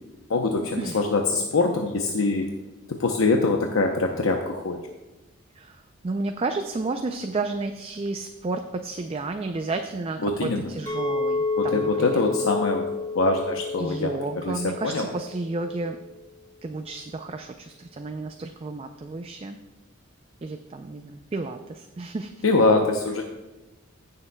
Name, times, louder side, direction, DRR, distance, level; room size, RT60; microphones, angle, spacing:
voice 1, 0.3-2.5 2.9-4.8 10.2-10.7 11.6-12.9 13.1-14.2 14.4-15.1 22.4-23.2, left 3 dB, 80° left, 2 dB, 0.7 m, -23 dB
voice 2, 5.6-12.2 13.8-16.0 16.6-19.6 20.4-22.3, right 3 dB, 30° right, 6 dB, 0.4 m, -32 dB
Chink clink, 10.9-16.0, left 3 dB, 15° left, 1.8 m, -30 dB
16.5 x 6.7 x 2.2 m, 1.1 s
head